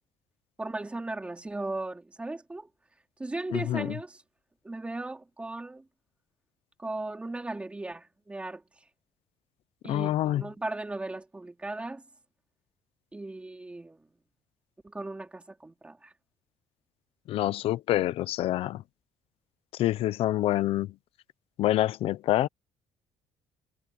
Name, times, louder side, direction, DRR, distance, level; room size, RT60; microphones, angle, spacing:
voice 1, 0.6-2.7 3.2-4.2 4.6-5.8 6.8-8.6 9.8-12.0 13.1-14.1 14.8-16.1, right 2 dB, 10° right, 3.5 m, -37 dB
voice 2, 3.5-3.9 9.9-10.4 17.3-18.8 19.8-20.9 21.6-22.5, left 14 dB, 60° left, 0.7 m, -26 dB
cardioid pair, 165°, 11 cm